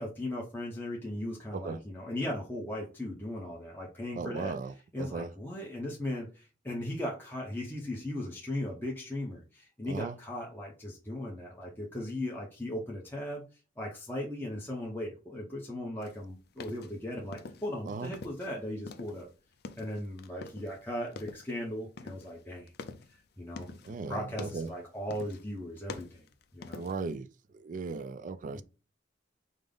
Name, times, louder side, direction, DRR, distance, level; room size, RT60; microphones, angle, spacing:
voice 1, 0.0-4.6 4.9-13.5 13.8-19.3 19.8-22.7 23.1-23.7 24.1-26.3 26.5-26.8 28.5-28.6, left 1 dB, 10° left, 0.7 m, -37 dB
voice 2, 4.1-5.3 9.9-10.2 17.9-18.1 23.8-24.7 26.7-27.3 27.5-28.6, right 4 dB, 45° right, 0.3 m, -37 dB
sound 1, 16.0-18.5 18.8-20.8 21.1-21.6 22.0-24.0 24.3-24.8 25.1-25.5 25.8-27.1, left 4 dB, 60° left, 0.4 m, -46 dB
5.1 x 2.0 x 3.8 m
head